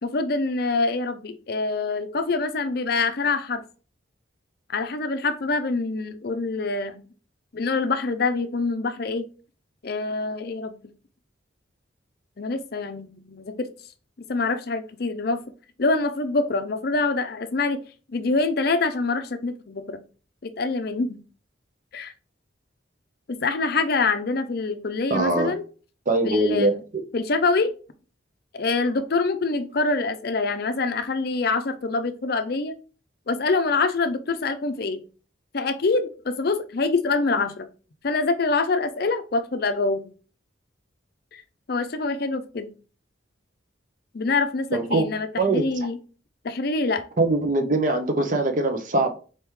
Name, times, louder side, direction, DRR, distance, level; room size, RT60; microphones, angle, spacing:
voice 1, 0.0-3.6 4.7-7.0 7.5-9.3 9.8-10.8 12.4-13.7 14.2-15.4 15.8-17.8 18.1-20.0 20.4-21.2 21.9-22.1 23.3-25.6 26.2-26.8 27.1-27.7 28.5-32.7 33.3-35.0 35.5-37.6 38.0-40.1 41.3-41.4 41.7-42.7 44.1-46.0 46.4-47.0, left 3 dB, 50° left, 0.5 m, -25 dB
voice 2, 25.1-25.5 26.1-26.7 44.7-45.1 45.4-45.7 47.2-49.1, right 2 dB, 40° right, 0.6 m, -22 dB
4.3 x 3.5 x 3.1 m
head